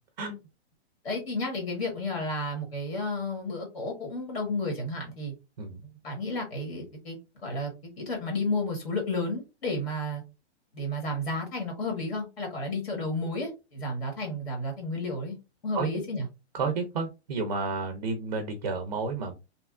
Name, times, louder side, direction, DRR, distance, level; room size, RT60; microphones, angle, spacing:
voice 1, 1.0-5.3 6.0-7.2 7.4-7.7 8.0-10.2 10.7-15.4 15.6-16.3, left 2 dB, 60° left, 1 dB, 1.3 m, -32 dB
voice 2, 16.5-19.3, right 4 dB, 40° right, 7 dB, 0.4 m, -31 dB
2.7 x 2.2 x 2.3 m, 0.27 s
hypercardioid pair, 175°, 34 cm